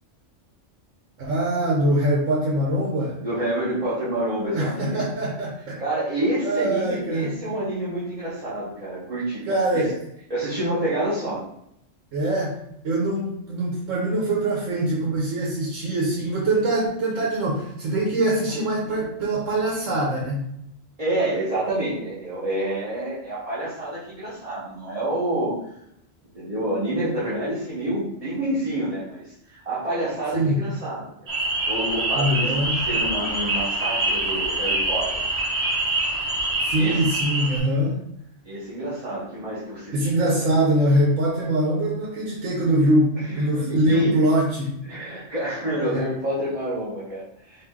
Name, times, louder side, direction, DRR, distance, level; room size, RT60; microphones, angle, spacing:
voice 1, 1.2-3.1 4.5-5.8 6.4-7.4 9.5-10.0 12.1-12.6 12.8-20.4 30.3-30.6 32.2-32.8 36.6-37.9 39.9-44.8 45.8-46.0, right 1 dB, 80° right, -3 dB, 1.2 m, -23 dB
voice 2, 3.2-5.1 5.8-9.8 10.3-11.4 21.0-25.5 26.3-31.1 31.7-35.2 36.7-37.1 38.4-40.2 43.2-44.1 44.8-47.6, right 1 dB, 30° right, -10 dB, 1.2 m, -28 dB
sound 1, 31.3-37.6, right 2 dB, 55° right, 1.2 m, -25 dB
4.8 x 2.6 x 3.6 m, 0.76 s
omnidirectional pair, 1.3 m